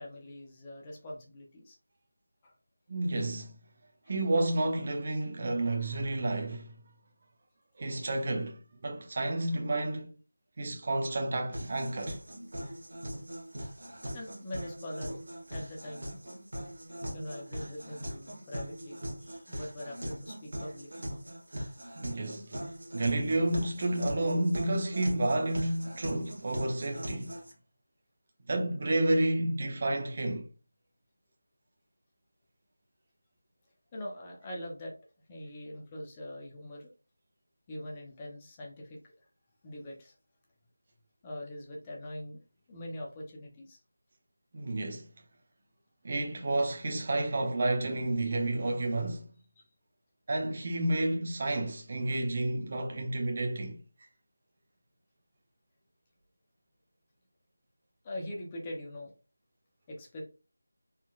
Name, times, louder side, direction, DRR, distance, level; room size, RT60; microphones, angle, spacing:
voice 1, 0.0-1.8 2.4-2.5 14.1-15.1 15.5-16.2 17.1-21.0 33.9-34.9 35.3-36.9 37.7-39.1 39.6-40.1 41.2-42.4 42.7-43.8 49.6-49.7 58.0-59.1 59.9-60.2, left 1 dB, 15° left, 0.7 m, -42 dB
voice 2, 2.9-3.6 4.1-6.8 7.8-10.1 10.6-12.2 22.0-22.5 22.9-27.3 28.5-30.5 44.5-45.1 46.0-49.3 50.3-53.8, right 2 dB, 30° right, 0.7 m, -30 dB
sound 1, 11.5-27.5, equal, 55° right, 1.7 m, -41 dB
4.2 x 4.0 x 2.4 m
figure-of-eight pair, 175°, 0 cm